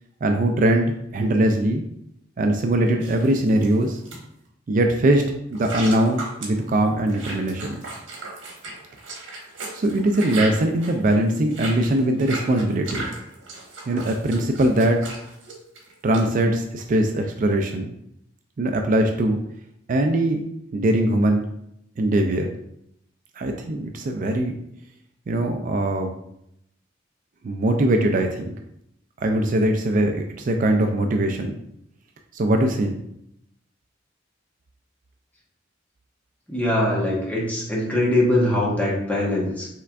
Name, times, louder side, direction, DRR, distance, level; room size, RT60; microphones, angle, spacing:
voice 1, 0.2-1.8 2.4-4.0 4.7-7.8 9.7-13.1 13.9-15.0 16.0-17.9 18.6-19.4 19.9-20.4 20.7-21.4 22.0-22.5 23.4-24.6 25.3-26.1 27.4-28.5 29.2-31.5 32.3-32.9, right 1 dB, 45° right, 4 dB, 0.4 m, -21 dB
sound 1, 3.0-4.2 5.5-16.2, right 3 dB, 80° right, 1.3 m, -36 dB
voice 2, 36.5-39.7, left 1 dB, 10° left, -4 dB, 1.1 m, -22 dB
5.7 x 3.3 x 2.5 m, 0.78 s
head